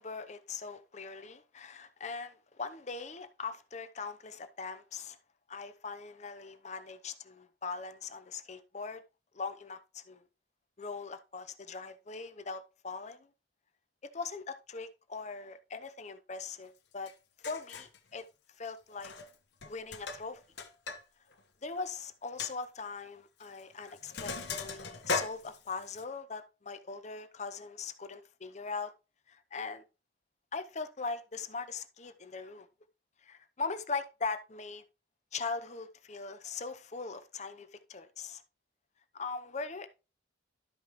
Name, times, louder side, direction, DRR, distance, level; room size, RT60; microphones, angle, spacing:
voice 1, 0.0-5.2 5.5-9.0 9.3-10.3 10.8-13.3 14.0-17.1 17.5-18.2 18.6-19.1 19.6-20.4 21.6-28.9 29.3-29.8 30.5-32.7 33.2-34.8 35.3-38.4 39.1-39.9, left 4 dB, 35° left, 0.7 m, -40 dB
Sink (filling or washing), 17.1-17.2 17.4-18.0 18.9-19.3 19.6-21.0 21.3-21.4 21.8-21.9 22.4-22.5 23.4-23.6 23.9-26.0, left 4 dB, 60° left, 1.1 m, -38 dB
12.0 x 5.4 x 3.0 m
head